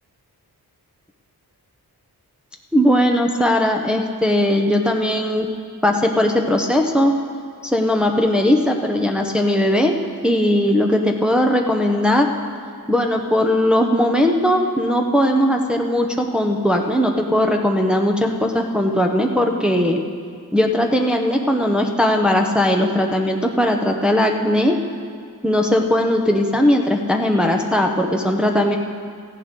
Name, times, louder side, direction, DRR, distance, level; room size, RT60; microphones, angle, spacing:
voice 1, 2.7-5.5 5.8-7.2 7.6-9.9 10.2-12.3 12.9-20.0 20.5-24.8 25.4-28.8, left 1 dB, ahead, 1 dB, 0.8 m, -18 dB
16.5 x 15.0 x 3.8 m, 2.1 s
wide cardioid pair, 115°, 39 cm